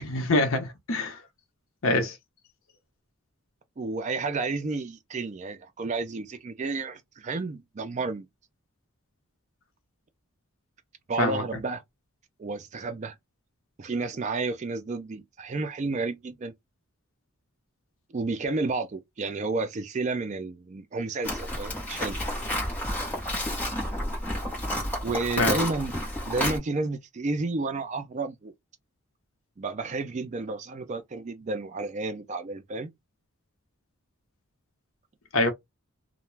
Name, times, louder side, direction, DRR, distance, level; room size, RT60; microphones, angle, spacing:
voice 1, 0.1-1.2 1.8-2.2 11.2-11.4 25.4-25.6 35.3-35.5, left 2 dB, 65° left, 0.8 m, -24 dB
voice 2, 3.8-8.3 11.1-11.8 12.4-13.2 13.8-16.5 18.1-22.2 25.0-25.9 26.3-28.5 29.6-32.9, right 3 dB, 35° right, 0.3 m, -31 dB
Livestock farm animals working animals, 21.2-26.6, left 1 dB, 5° left, 0.9 m, -30 dB
2.3 x 2.1 x 3.1 m
head